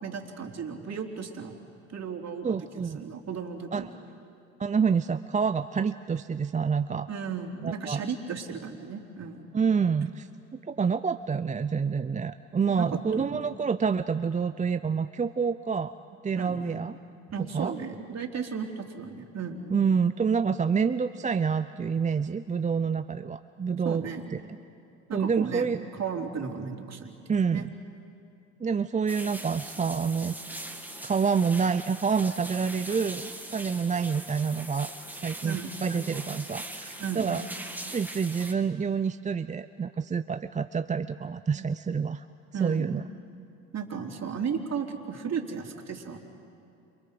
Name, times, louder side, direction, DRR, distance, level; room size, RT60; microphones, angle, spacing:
voice 1, 0.0-1.5 1.9-2.5 2.7-3.9 7.1-9.5 12.7-13.4 16.4-16.8 17.3-19.7 23.8-24.3 25.1-27.8 35.4-35.7 36.1-36.2 37.0-37.4 42.5-43.0 43.7-46.2, right 6 dB, 45° right, 2 dB, 3.3 m, -35 dB
voice 2, 2.4-3.0 3.7-3.9 4.6-7.1 7.6-8.0 9.5-10.3 10.7-15.9 16.2-16.9 17.5-17.7 19.7-24.0 24.3-24.4 25.1-25.8 27.3-27.7 28.6-30.4 31.0-34.9 35.2-37.4 37.9-42.2 42.6-43.0, right 6 dB, 20° right, 11 dB, 0.6 m, -27 dB
sound 1, 29.1-38.5, right 1 dB, 5° right, 2.4 m, -41 dB
29.5 x 27.5 x 5.1 m, 2.7 s
hypercardioid pair, 65°, 37 cm